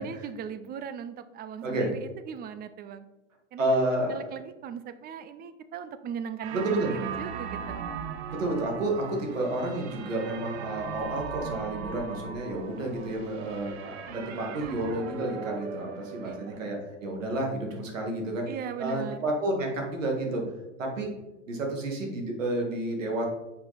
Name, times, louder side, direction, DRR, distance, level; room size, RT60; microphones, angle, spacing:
voice 1, 0.0-3.0 3.5-3.8 4.1-7.8 16.2-16.5 18.5-19.2, right 7 dB, 25° right, 11 dB, 0.6 m, -38 dB
voice 2, 1.6-1.9 3.6-4.3 6.5-6.9 8.3-18.5 18.8-20.5 20.8-21.1 21.5-23.3, right 1 dB, 85° right, 1 dB, 2.1 m, -30 dB
sound 1, 6.4-16.6, right 7 dB, 60° right, 0.9 m, -39 dB
7.0 x 5.1 x 4.2 m, 1.0 s
hypercardioid pair, 110°, 37 cm